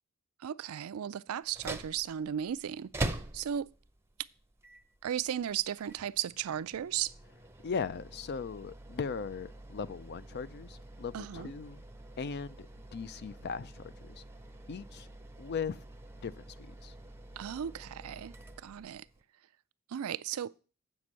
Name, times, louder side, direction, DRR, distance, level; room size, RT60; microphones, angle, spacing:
voice 1, 0.4-3.7 5.0-7.1 11.1-11.5 17.4-19.1 19.9-20.5, right 9 dB, 80° right, 0.4 m, -36 dB
sound 1, 1.4-19.2, right 2 dB, 10° right, 0.7 m, -45 dB
voice 2, 7.6-11.8 12.2-14.2 14.7-15.1 15.4-15.8 16.2-16.9, left 5 dB, 50° left, 0.4 m, -38 dB
8.1 x 5.2 x 7.4 m
head